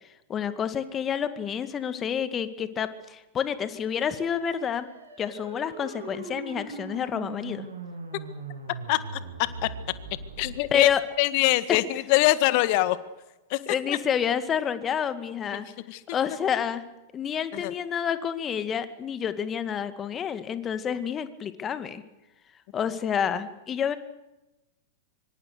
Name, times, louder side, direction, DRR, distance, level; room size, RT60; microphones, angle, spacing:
voice 1, 0.3-4.9 5.2-7.7 10.7-11.0 11.7-11.8 13.7-15.7 16.1-16.8 17.1-22.0 22.7-24.0, left 8 dB, 25° left, 11 dB, 2.1 m, -29 dB
sound 1, 4.0-10.9, right 3 dB, 80° right, 6.8 m, -40 dB
voice 2, 8.9-9.7 10.4-10.9 11.2-13.0 13.5-13.6 13.9-14.0 15.5-15.6 15.9-16.0 17.5-17.7, left 18 dB, 50° left, 14 dB, 1.8 m, -24 dB
25.5 x 24.5 x 6.8 m, 1.0 s
figure-of-eight pair, 95°, 0 cm